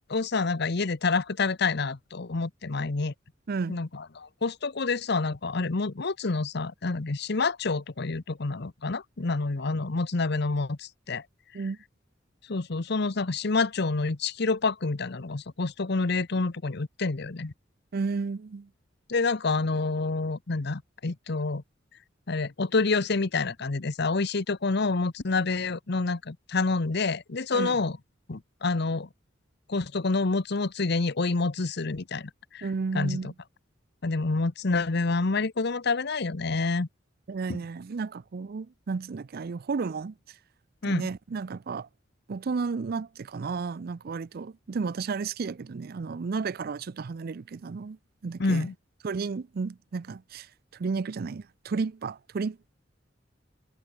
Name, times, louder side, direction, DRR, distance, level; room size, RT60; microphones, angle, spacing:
voice 1, 0.0-3.1 3.7-11.2 12.5-17.5 19.1-21.6 22.3-28.0 28.3-29.1 29.7-32.7 32.9-33.3 34.0-36.9 40.8-41.1 48.4-48.7, left 3 dB, 60° left, 0.9 m, -28 dB
voice 2, 3.5-3.8 11.5-11.8 17.9-18.7 27.5-27.8 32.6-33.3 37.3-40.4 40.9-41.9 42.3-48.0 48.2-48.7 49.0-52.7, right 4 dB, 55° right, 0.4 m, -33 dB
head